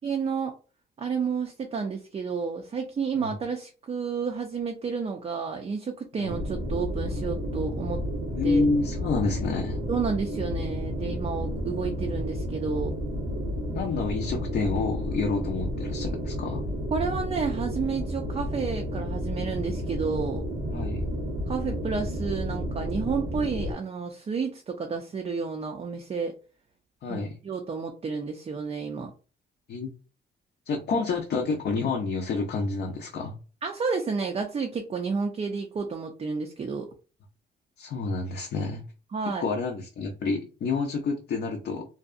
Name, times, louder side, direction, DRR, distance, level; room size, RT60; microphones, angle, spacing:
voice 1, 0.0-0.5 1.0-8.0 8.4-8.6 9.9-12.9 16.9-20.4 21.5-26.3 27.1-27.2 27.4-29.1 33.6-36.9 39.1-39.4, right 5 dB, 30° right, 3 dB, 0.4 m, -31 dB
sound 1, 6.3-23.7, equal, 90° right, 0.9 m, -31 dB
voice 2, 8.4-9.8 13.7-16.6 20.7-21.0 27.0-27.3 29.7-29.9 30.7-33.4 37.8-38.8 39.2-41.8, left 4 dB, 55° left, 1 dB, 0.5 m, -28 dB
2.6 x 2.1 x 2.4 m, 0.36 s
cardioid pair, 90°, 20 cm